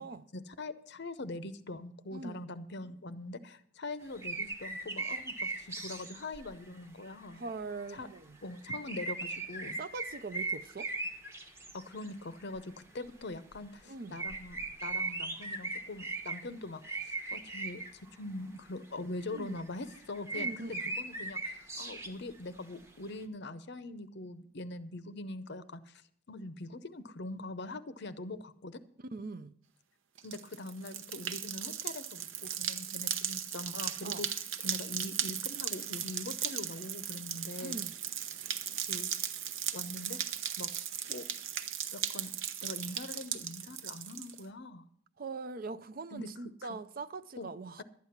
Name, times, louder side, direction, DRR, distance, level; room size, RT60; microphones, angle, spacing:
voice 1, 0.3-7.4 7.9-8.1 8.4-9.8 11.7-26.0 26.3-28.8 30.2-37.9 38.9-39.1 39.7-40.2 40.6-40.7 41.1-41.2 41.9-42.3 42.6-44.9 46.1-46.3 46.6-46.8 47.4-47.5 47.8-47.9, left 2 dB, 50° left, 0.7 m, -43 dB
voice 2, 2.1-2.4 7.3-8.4 9.8-10.9 13.9-14.2 19.3-19.6 20.3-20.9 29.1-29.5 34.0-34.2 37.6-37.9 45.2-47.8, right 3 dB, 40° right, 0.5 m, -42 dB
sound 1, 4.2-6.8 7.0-8.2 8.5-12.1 12.4-12.6 13.0-13.1 13.5-13.6 14.0-16.5 16.8-18.1 19.2-22.3 22.7-22.8, right 3 dB, 15° right, 0.9 m, -38 dB
sound 2, 30.2-44.4, right 9 dB, 60° right, 0.8 m, -37 dB
12.0 x 9.4 x 5.8 m
head